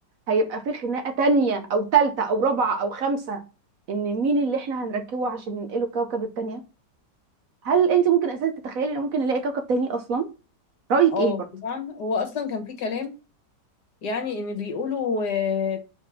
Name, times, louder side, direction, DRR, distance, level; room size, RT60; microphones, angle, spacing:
voice 1, 0.3-3.4 3.9-6.6 7.6-10.2 10.9-11.3, right 5 dB, 60° right, 1.0 m, -23 dB
voice 2, 11.1-13.1 14.0-15.8, left 5 dB, 65° left, 1.8 m, -28 dB
4.5 x 4.2 x 5.7 m
omnidirectional pair, 1.9 m